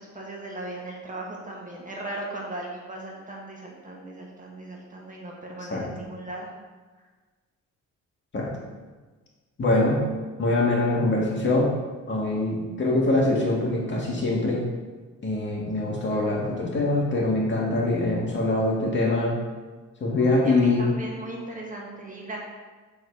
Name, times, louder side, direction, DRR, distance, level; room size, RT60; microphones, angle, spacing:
voice 1, 0.0-6.5 18.0-18.2 20.4-22.4, right 2 dB, 25° right, -2 dB, 1.6 m, -37 dB
voice 2, 9.6-10.0 10.4-11.7 12.1-14.6 15.2-19.4 20.0-20.9, left 2 dB, 40° left, -3 dB, 2.0 m, -23 dB
7.7 x 4.3 x 4.8 m, 1.3 s
cardioid pair, 90°, 30 cm